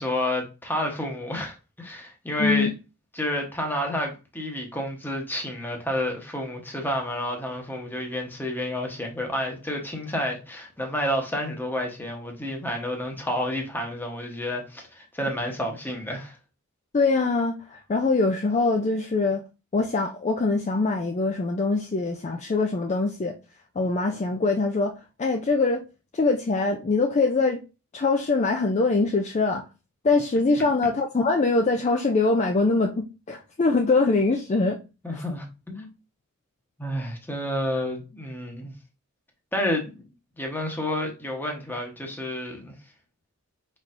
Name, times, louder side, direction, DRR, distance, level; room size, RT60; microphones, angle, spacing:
voice 1, 0.0-2.7 3.1-16.4 35.0-35.9 36.8-38.7 39.5-40.0 40.4-42.7, left 1 dB, 10° left, 1.0 m, -30 dB
voice 2, 2.4-2.7 16.9-19.4 19.7-23.4 23.8-24.9 25.2-25.8 26.1-27.6 27.9-29.7 30.0-34.8 35.1-35.2, left 3 dB, 30° left, 0.4 m, -23 dB
4.7 x 4.2 x 2.5 m
head